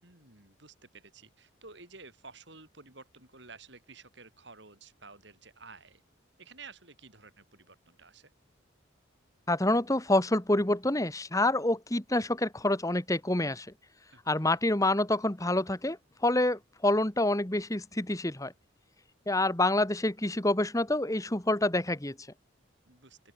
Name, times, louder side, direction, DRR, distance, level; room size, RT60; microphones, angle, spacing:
voice 1, 0.0-6.0 6.4-8.3 14.1-14.6 22.9-23.2, right 4 dB, 60° right, 7.7 m, -52 dB
voice 2, 9.5-13.7 14.3-16.0 16.2-18.5 19.3-22.1, left 1 dB, 15° left, 1.6 m, -27 dB
open air
head